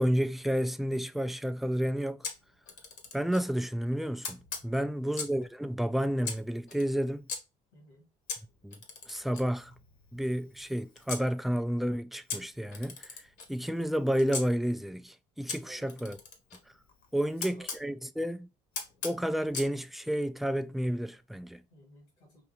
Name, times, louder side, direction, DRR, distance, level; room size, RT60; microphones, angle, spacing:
voice 1, 0.0-2.3 3.1-7.3 8.6-8.8 9.1-9.7 10.1-13.0 13.5-16.2 17.1-18.5 19.0-21.6, equal, ahead, 0.4 m, -31 dB
Camera, 2.2-3.5 4.2-5.5 6.2-7.4 8.3-11.3 12.3-14.5 15.5-17.8 18.7-19.7, left 5 dB, 65° left, 1.3 m, -41 dB
voice 2, 7.7-8.1 15.6-15.9 17.1-17.9 21.7-22.4, right 1 dB, 90° left, 2.6 m, -55 dB
4.7 x 2.7 x 2.9 m
hypercardioid pair, 60°, 19 cm